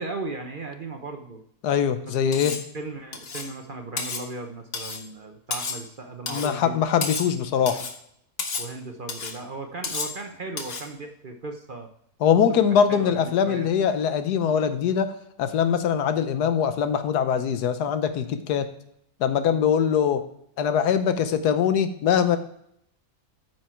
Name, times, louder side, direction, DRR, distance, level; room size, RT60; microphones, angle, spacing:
voice 1, 0.0-1.4 2.0-2.1 2.4-6.8 7.6-7.8 8.6-11.9 12.5-13.7, right 3 dB, 45° right, 4 dB, 0.8 m, -37 dB
voice 2, 1.6-2.5 6.3-7.8 12.2-15.1 15.4-18.7 19.2-20.2 20.6-22.4, left 8 dB, 90° left, 10 dB, 1.4 m, -22 dB
Cutlery silverware, 2.3-2.7 3.1-3.5 4.0-4.3 4.7-5.0 5.5-5.9 6.3-6.5 7.0-7.4 7.7-8.0 8.4-8.7 9.1-9.4 9.8-10.2 10.6-10.9, left 4 dB, 45° left, 1.1 m, -32 dB
9.4 x 6.2 x 4.4 m, 0.71 s
omnidirectional pair, 1.7 m